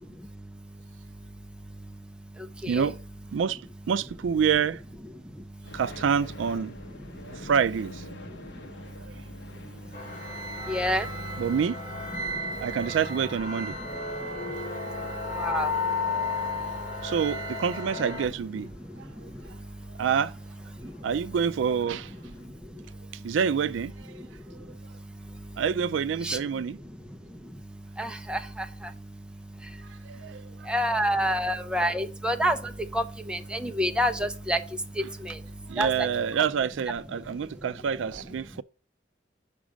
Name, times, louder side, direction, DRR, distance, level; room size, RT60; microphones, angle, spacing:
voice 1, 2.7-3.0 3.3-4.8 5.7-6.8 7.2-8.1 9.0-9.1 11.4-11.8 12.5-13.9 17.0-18.7 19.0-19.3 20.0-20.3 21.0-22.1 23.1-24.2 24.5-24.6 25.6-26.8 29.8-30.7 35.7-38.6, right 7 dB, 80° right, 0.4 m, -27 dB
sound 1, 5.6-22.5, left 1 dB, 65° left, 0.9 m, -49 dB
sound 2, 9.9-18.3, left 3 dB, 40° left, 2.6 m, -33 dB
voice 2, 10.7-11.1 15.4-15.7 26.2-26.4 28.0-28.4 30.7-32.6 32.9-34.6 35.2-35.3 35.8-36.1, equal, 5° right, 0.6 m, -27 dB
6.0 x 5.1 x 6.2 m
head